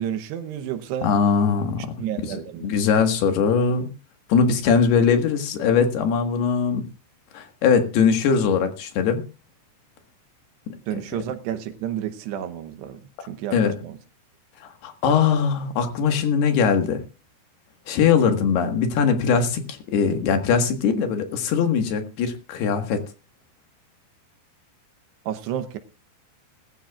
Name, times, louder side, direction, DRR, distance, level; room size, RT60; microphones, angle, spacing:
voice 1, 0.0-1.1 2.0-2.7 10.9-13.0 13.3-14.0 25.3-25.8, right 10 dB, 75° right, 9 dB, 2.9 m, -30 dB
voice 2, 1.0-1.9 2.3-3.9 4.3-6.8 7.3-9.2 10.7-11.2 13.5-13.7 14.8-17.0 17.9-23.0, left 6 dB, 70° left, 6 dB, 3.4 m, -21 dB
20.0 x 14.5 x 2.4 m, 0.32 s
omnidirectional pair, 5.1 m